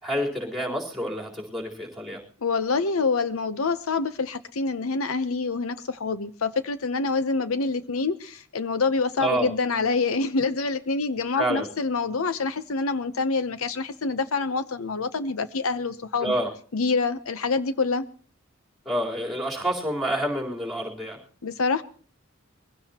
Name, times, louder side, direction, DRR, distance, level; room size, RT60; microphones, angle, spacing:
voice 1, 0.0-2.2 9.2-9.5 11.4-11.7 16.2-16.5 18.9-21.2, right 1 dB, ahead, 3.9 m, -28 dB
voice 2, 2.4-16.3 16.7-18.1 21.4-21.8, left 4 dB, 80° left, 0.8 m, -26 dB
22.5 x 16.0 x 2.9 m
head